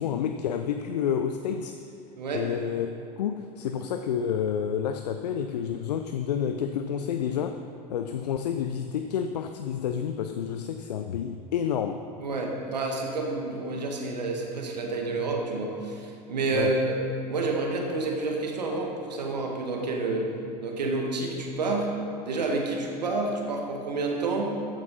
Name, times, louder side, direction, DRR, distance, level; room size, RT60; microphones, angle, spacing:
voice 1, 0.0-1.8 2.3-7.6 7.9-12.0 16.5-16.7, left 8 dB, 75° left, 7 dB, 0.5 m, -29 dB
voice 2, 12.2-17.0 17.3-20.3 20.6-21.9 22.2-24.5, right 3 dB, 80° right, 1 dB, 1.7 m, -29 dB
14.0 x 9.0 x 4.2 m, 2.6 s
figure-of-eight pair, 75°, 21 cm